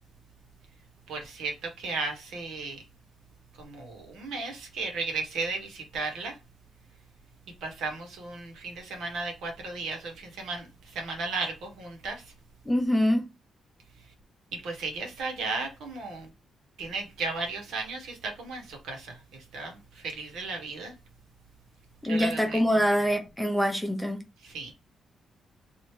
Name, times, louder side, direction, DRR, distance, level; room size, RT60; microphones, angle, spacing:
voice 1, 1.1-2.8 3.6-6.4 7.6-12.2 14.5-16.3 16.8-19.2 19.5-20.9 22.0-22.6 24.4-24.7, right 3 dB, 85° right, 1.3 m, -35 dB
voice 2, 12.7-13.2 22.0-24.2, equal, ahead, 0.8 m, -25 dB
3.2 x 2.7 x 2.9 m
cardioid pair, 120°, 0 cm